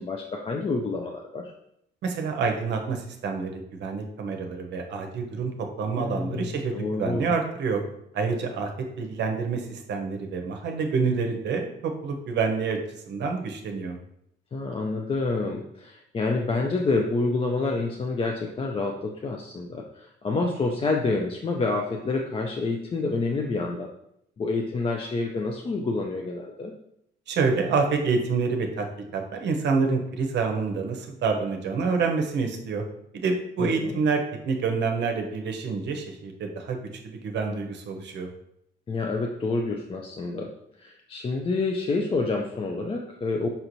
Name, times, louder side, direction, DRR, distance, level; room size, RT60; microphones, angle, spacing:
voice 1, 0.0-1.5 5.9-7.3 14.5-23.9 24.4-26.7 33.6-34.0 38.9-40.5 40.8-43.5, left 3 dB, 30° left, 2 dB, 0.4 m, -28 dB
voice 2, 2.0-7.8 8.1-8.7 9.0-12.8 13.1-14.0 27.3-28.8 29.1-32.8 33.1-36.8 37.0-38.3, right 4 dB, 65° right, 4 dB, 0.7 m, -27 dB
5.4 x 2.9 x 2.6 m, 0.76 s
cardioid pair, 90°, 20 cm